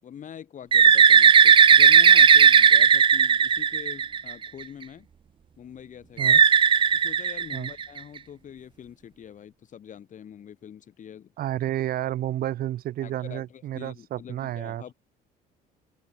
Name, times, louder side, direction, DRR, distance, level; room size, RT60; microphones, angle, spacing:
voice 1, 0.0-5.1 5.6-6.4 6.9-11.3 13.0-14.9, left 9 dB, 50° left, 4.2 m, -44 dB
Bird, 0.7-4.4 6.2-8.0, right 7 dB, 30° right, 0.5 m, -16 dB
voice 2, 11.4-14.8, right 13 dB, 60° right, 1.3 m, -31 dB
open air
cardioid pair, 110°, 17 cm